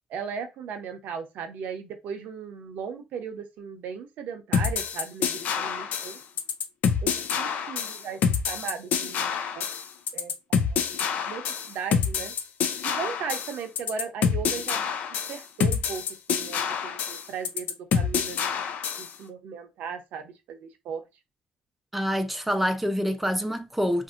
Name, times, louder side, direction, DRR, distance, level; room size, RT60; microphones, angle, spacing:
voice 1, 0.1-6.2 7.0-7.1 7.4-8.2 8.5-9.7 10.1-10.8 11.2-11.4 11.7-12.3 12.8-16.0 16.3-18.4 19.0-21.0, right 6 dB, 80° right, 0.7 m, -37 dB
sound 1, 4.5-19.1, left 7 dB, 70° left, 0.5 m, -27 dB
voice 2, 21.9-24.0, equal, 5° right, 0.4 m, -26 dB
2.9 x 2.7 x 2.4 m
cardioid pair, 105°, 3 cm